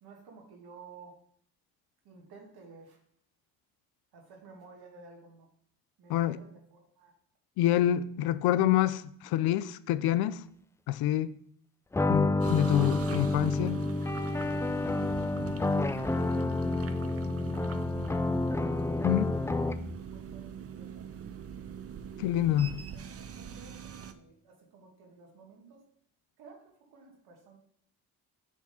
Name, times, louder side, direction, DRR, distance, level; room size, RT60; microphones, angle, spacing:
voice 1, 0.0-1.2 2.0-3.0 4.1-5.5 6.0-7.1 19.9-21.3 22.7-25.8 26.4-27.6, right 4 dB, 75° right, 1.9 m, -54 dB
voice 2, 7.6-10.4 10.9-11.3 12.1-13.8 19.0-19.4 22.2-22.8, left 13 dB, 75° left, 0.5 m, -27 dB
sound 1, 11.9-20.0, left 2 dB, 10° left, 0.3 m, -29 dB
sound 2, 12.4-24.1, right 8 dB, 40° right, 0.7 m, -42 dB
7.3 x 3.6 x 5.7 m
supercardioid pair, 60°, 38 cm